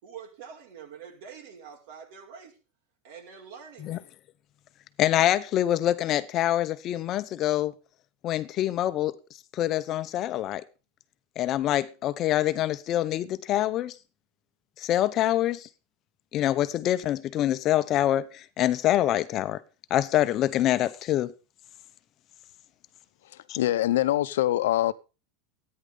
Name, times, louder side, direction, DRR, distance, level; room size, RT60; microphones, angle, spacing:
voice 1, 0.0-2.6 3.0-4.0, right 7 dB, 60° right, 5.5 m, -45 dB
voice 2, 5.0-7.7 8.2-9.2 9.5-10.6 11.4-13.9 14.8-15.7 16.3-19.6 19.9-21.3 23.5-23.6, left 13 dB, 35° left, 0.9 m, -25 dB
voice 3, 23.2-24.9, left 14 dB, 90° left, 0.8 m, -24 dB
13.5 x 9.9 x 5.3 m
supercardioid pair, 160°, 0 cm